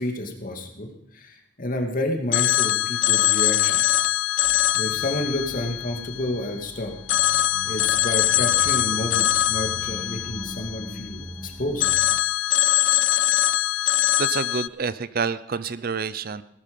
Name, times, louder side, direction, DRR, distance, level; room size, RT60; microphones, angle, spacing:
voice 1, 0.0-4.0 4.7-6.9 7.6-11.9, left 1 dB, 45° left, 3 dB, 2.4 m, -30 dB
Telephone, 2.3-6.6 7.1-11.3 11.8-14.7, left 13 dB, 75° left, 0.5 m, -22 dB
sound 1, 4.4-12.1, equal, ahead, 2.7 m, -42 dB
voice 2, 14.2-16.4, right 5 dB, 50° right, 16 dB, 0.6 m, -28 dB
18.0 x 12.5 x 5.4 m, 0.78 s
head